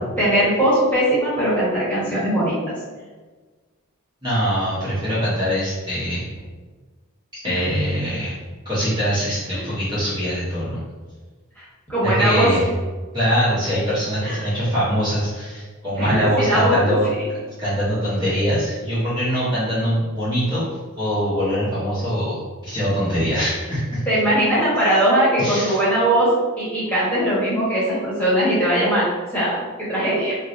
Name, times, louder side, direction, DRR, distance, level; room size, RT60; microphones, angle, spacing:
voice 1, 0.2-2.6 7.5-7.6 9.5-9.7 11.6-12.5 14.2-14.6 16.0-16.8 24.1-26.3 26.6-29.1 29.3-30.3, right 1 dB, 5° left, -10 dB, 1.2 m, -20 dB
voice 2, 4.2-6.3 7.4-8.4 8.6-10.8 12.0-12.7 13.1-17.1 17.6-20.7 21.0-24.0 25.4-25.8, equal, 20° right, -12 dB, 0.8 m, -23 dB
4.5 x 2.0 x 2.5 m, 1.4 s
head